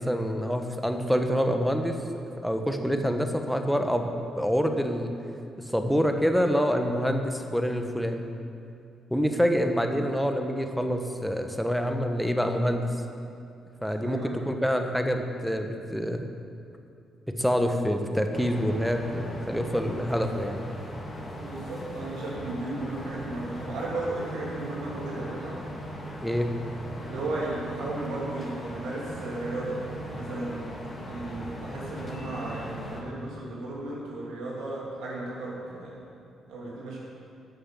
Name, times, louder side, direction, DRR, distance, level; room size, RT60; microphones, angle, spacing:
voice 1, 0.0-2.0 2.4-5.1 5.7-8.3 9.1-12.9 13.8-16.2 17.4-20.8 26.2-26.5, equal, ahead, 5 dB, 1.3 m, -26 dB
voice 2, 13.9-14.5 21.3-25.6 27.0-36.0 36.5-37.0, right 2 dB, 75° right, -6 dB, 2.9 m, -35 dB
sound 1, 18.3-33.0, equal, 35° left, 2.5 m, -39 dB
11.0 x 6.7 x 7.8 m, 2.5 s
supercardioid pair, 55°, 0 cm